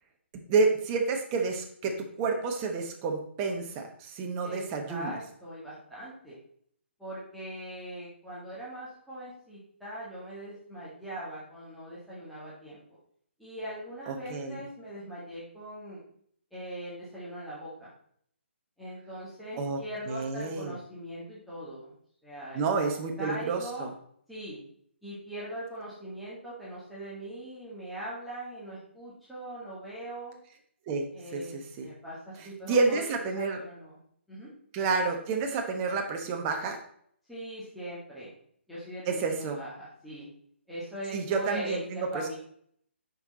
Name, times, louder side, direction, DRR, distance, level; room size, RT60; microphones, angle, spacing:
voice 1, 0.5-5.2 14.1-14.6 19.6-19.8 20.1-20.7 22.5-23.9 30.9-31.9 32.7-33.6 34.7-36.8 39.1-39.6 41.1-42.3, right 4 dB, 20° right, 4 dB, 1.1 m, -29 dB
voice 2, 4.4-6.4 7.0-12.8 13.4-16.0 16.5-17.9 18.8-21.9 22.2-23.9 24.3-24.6 25.0-30.4 31.1-33.0 33.3-34.0 34.3-34.5 37.3-38.3 38.7-40.3 40.7-42.4, right 1 dB, ahead, -11 dB, 1.8 m, -41 dB
7.0 x 5.6 x 4.1 m, 0.65 s
figure-of-eight pair, 140°, 7 cm